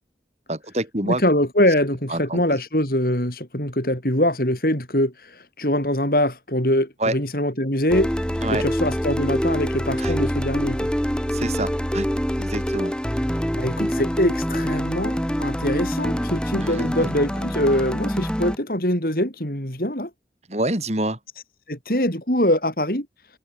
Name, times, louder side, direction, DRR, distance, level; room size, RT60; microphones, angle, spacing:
voice 1, 0.5-1.2 2.1-2.4 7.0-7.1 8.4-8.6 10.0-10.1 11.3-12.1 12.4-12.9 16.6-17.2 20.5-21.2, right 1 dB, 40° right, 5.3 m, -27 dB
voice 2, 1.0-8.1 8.5-10.9 13.5-20.1 21.7-23.1, left 1 dB, 55° left, 7.5 m, -23 dB
sound 1, 7.9-18.6, equal, 5° left, 1.6 m, -25 dB
head